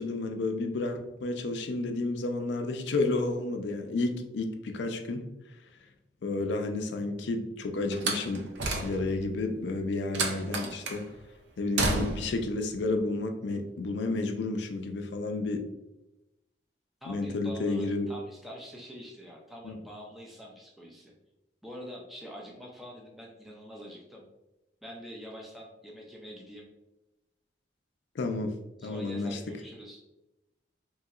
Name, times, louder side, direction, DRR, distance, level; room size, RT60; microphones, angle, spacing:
voice 1, 0.0-5.2 6.2-11.1 11.6-15.7 17.1-18.1 19.6-19.7 28.2-28.5 28.8-29.4, left 2 dB, 75° left, 5 dB, 0.4 m, -31 dB
Slam, 7.9-9.3 10.1-11.0 11.8-12.4, right 2 dB, 80° right, 0.5 m, -31 dB
voice 2, 17.0-21.1 21.6-24.2 24.8-26.7 28.8-30.0, equal, ahead, -2 dB, 0.3 m, -45 dB
3.0 x 2.7 x 2.4 m, 0.95 s
head